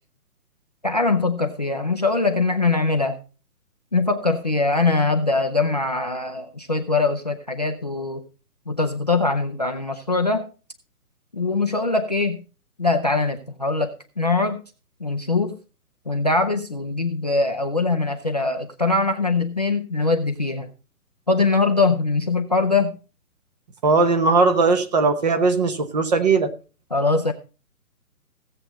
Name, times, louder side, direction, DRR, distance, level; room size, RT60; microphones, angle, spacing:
voice 1, 0.8-3.2 3.9-8.2 8.7-10.4 11.3-12.4 12.8-14.6 15.0-15.6 16.1-20.7 21.3-23.0 26.9-27.3, left 3 dB, 30° left, 9 dB, 0.5 m, -22 dB
voice 2, 23.8-26.5, right 3 dB, 25° right, 9 dB, 0.9 m, -19 dB
16.0 x 7.6 x 4.0 m, 0.34 s
hypercardioid pair, 155°, 46 cm